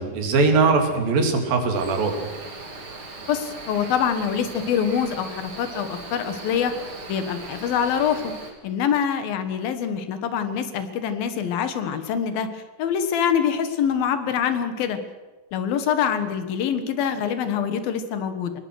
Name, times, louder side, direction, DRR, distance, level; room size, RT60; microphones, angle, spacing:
voice 1, 0.0-2.3, right 4 dB, 80° right, 4 dB, 4.4 m, -21 dB
Cricket, 1.7-8.5, right 3 dB, 35° right, 3.6 m, -39 dB
voice 2, 3.3-6.7 7.1-8.3 8.6-12.5 12.8-15.0 15.5-18.5, left 8 dB, 80° left, 9 dB, 3.3 m, -25 dB
25.0 x 20.0 x 6.4 m, 1.3 s
omnidirectional pair, 4.1 m